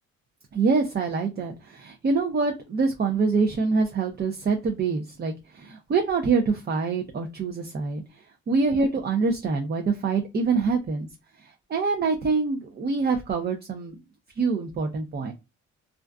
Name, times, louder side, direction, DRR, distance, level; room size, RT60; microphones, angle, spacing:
voice 1, 0.5-8.0 8.5-11.1 11.7-14.0 14.4-15.3, right 4 dB, 35° right, 4 dB, 0.5 m, -25 dB
2.5 x 2.2 x 2.3 m, 0.26 s
cardioid pair, 90°, 30 cm